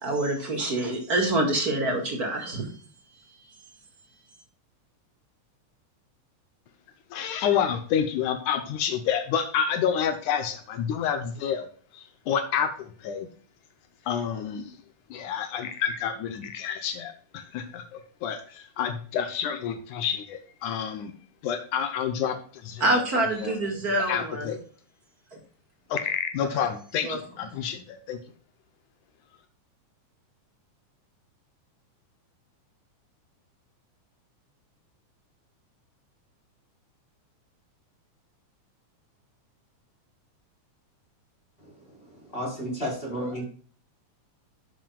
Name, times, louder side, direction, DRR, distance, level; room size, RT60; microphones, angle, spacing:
voice 1, 0.0-2.7 22.8-24.5 25.3-25.4 27.0-27.2, right 1 dB, 35° right, 2 dB, 1.9 m, -26 dB
voice 2, 7.1-11.7 11.9-13.3 14.1-14.7 15.1-17.8 18.2-21.1 21.4-22.4 22.6-23.0 23.4-23.5 24.1-24.6 25.9-28.2, left 8 dB, 80° left, 8 dB, 2.2 m, -29 dB
voice 3, 42.3-43.4, equal, 15° left, -4 dB, 4.2 m, -31 dB
11.5 x 7.6 x 2.3 m, 0.43 s
omnidirectional pair, 3.5 m